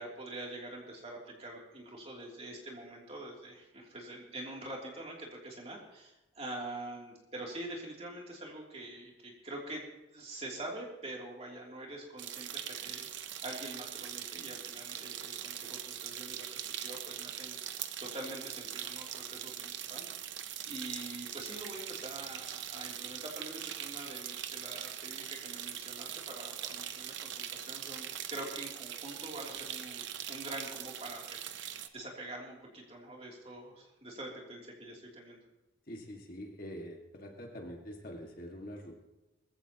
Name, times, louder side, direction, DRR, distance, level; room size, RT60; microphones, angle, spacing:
voice 1, 0.0-17.6 18.0-20.1 20.6-35.4, right 1 dB, 30° right, -2 dB, 3.0 m, -45 dB
sound 1, 12.2-31.9, right 10 dB, 65° right, 0.8 m, -42 dB
voice 2, 35.9-38.9, equal, 45° left, 1 dB, 2.0 m, -45 dB
21.0 x 15.0 x 3.0 m, 1.0 s
head